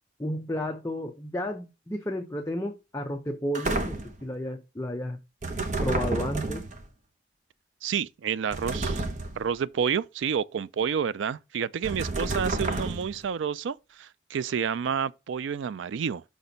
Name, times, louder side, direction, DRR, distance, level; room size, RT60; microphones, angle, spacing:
voice 1, 0.2-5.2 5.8-6.7, left 1 dB, 15° left, 0.6 m, -32 dB
sound 1, 3.5-4.2 5.4-6.9 8.5-9.5 11.8-13.2, right 2 dB, 40° right, 0.9 m, -30 dB
voice 2, 7.8-9.0 9.4-16.2, right 7 dB, 85° right, 0.4 m, -29 dB
5.9 x 4.3 x 5.1 m
head